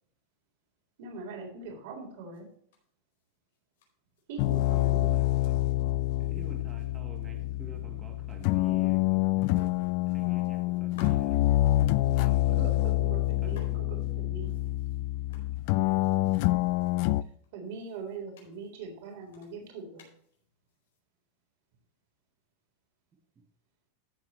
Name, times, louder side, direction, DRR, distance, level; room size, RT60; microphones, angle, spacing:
voice 1, 1.0-2.5 4.3-5.2 12.5-14.6 17.5-20.1, right 4 dB, 60° right, 1 dB, 3.8 m, -41 dB
sound 1, 2.3-5.0 5.3-7.9 8.3-8.4 8.7-9.2 9.5-11.8 12.8-21.0, left 4 dB, 85° left, 4.5 m, -58 dB
sound 2, 4.4-17.2, left 17 dB, 45° left, 0.3 m, -27 dB
voice 2, 5.1-9.7 10.1-11.6 12.0-12.8 13.4-14.1 23.3-23.4, right 4 dB, 15° right, 5 dB, 1.3 m, -50 dB
14.0 x 7.6 x 3.1 m, 0.66 s
supercardioid pair, 165°, 0 cm